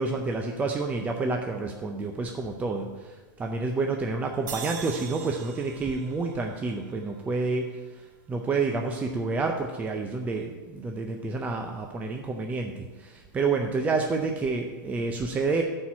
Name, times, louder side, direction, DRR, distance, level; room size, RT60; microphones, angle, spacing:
voice 1, 0.0-7.7 8.3-15.6, right 3 dB, 15° right, 3 dB, 0.5 m, -29 dB
sound 1, 4.5-7.7, right 7 dB, 65° right, 1.2 m, -42 dB
9.2 x 4.5 x 7.3 m, 1.3 s
supercardioid pair, 145°, 11 cm